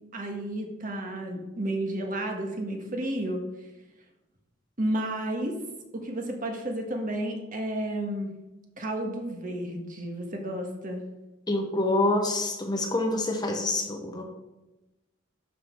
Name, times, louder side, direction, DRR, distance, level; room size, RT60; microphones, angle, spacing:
voice 1, 0.1-3.4 4.8-5.6 5.9-8.3 8.8-11.0, right 1 dB, 40° right, 2 dB, 1.4 m, -32 dB
voice 2, 11.5-14.2, left 2 dB, 20° left, 2 dB, 1.0 m, -26 dB
12.0 x 5.1 x 4.5 m, 1.0 s
head